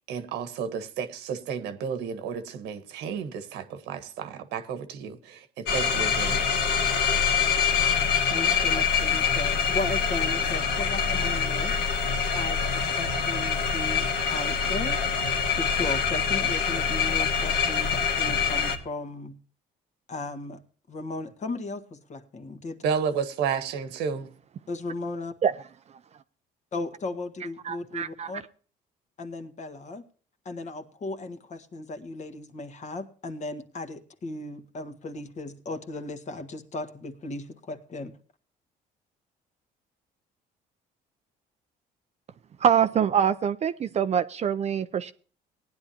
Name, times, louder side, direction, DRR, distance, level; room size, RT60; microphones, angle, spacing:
voice 1, 0.1-6.4 22.8-24.3, right 6 dB, 85° right, 1.5 m, -32 dB
sound 1, 5.7-18.8, left 6 dB, 75° left, 2.0 m, -25 dB
voice 2, 8.3-11.7 12.3-15.0 15.6-19.4 20.1-20.6 20.9-22.9 24.7-25.3 26.7-28.4 29.2-30.0 30.5-38.1, left 2 dB, 45° left, 1.7 m, -36 dB
voice 3, 27.6-28.3 42.6-45.1, right 8 dB, 40° right, 0.5 m, -24 dB
18.5 x 10.5 x 2.8 m
cardioid pair, 110°, 17 cm